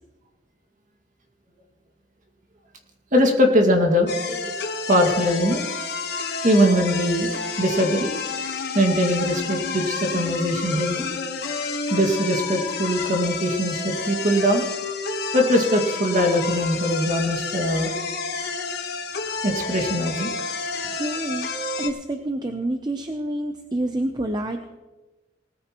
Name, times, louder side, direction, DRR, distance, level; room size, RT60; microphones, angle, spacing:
voice 1, 3.1-4.5 4.9-5.7 6.4-7.3 7.6-8.1 8.7-11.1 11.9-14.6 15.3-17.9 19.4-20.5, equal, 40° right, 3 dB, 2.0 m, -21 dB
sound 1, 4.1-21.9, left 4 dB, 55° left, 1.3 m, -30 dB
voice 2, 20.8-21.5 21.8-24.8, right 1 dB, 20° right, 6 dB, 0.6 m, -28 dB
19.0 x 14.0 x 3.0 m, 1.2 s
head